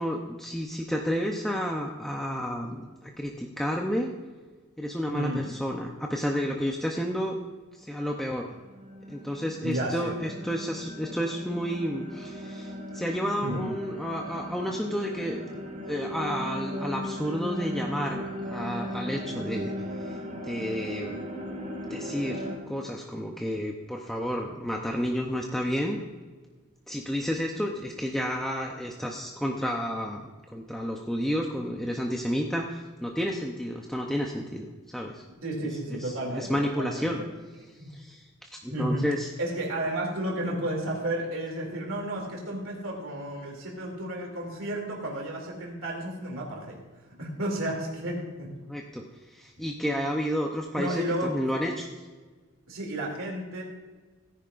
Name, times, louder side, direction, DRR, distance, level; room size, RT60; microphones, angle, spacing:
voice 1, 0.0-4.1 4.8-7.4 7.7-8.5 9.1-15.5 15.9-21.3 21.9-26.0 26.9-34.7 34.9-35.2 35.9-37.2 37.9-39.3 48.7-52.0, equal, ahead, 0 dB, 0.7 m, -31 dB
voice 2, 5.1-5.4 9.6-10.2 13.4-13.7 35.4-37.3 37.8-37.9 38.7-39.0 39.4-46.8 47.2-48.5 50.7-51.4 52.7-53.6, right 1 dB, 70° right, -1 dB, 2.8 m, -32 dB
sound 1, 8.2-22.6, equal, 35° right, 2.2 m, -37 dB
17.0 x 10.0 x 2.5 m, 1.4 s
head